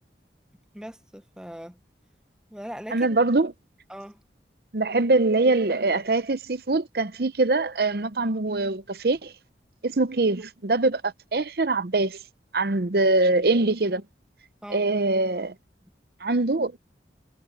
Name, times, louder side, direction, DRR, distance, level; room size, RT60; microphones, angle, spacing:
voice 1, 0.7-1.8 2.5-3.2 3.9-4.2 14.6-14.8, equal, 5° right, 0.9 m, -40 dB
voice 2, 2.9-3.5 4.7-9.3 9.8-12.2 12.5-14.0 14.7-15.5 16.2-16.8, right 2 dB, 60° right, 0.8 m, -23 dB
head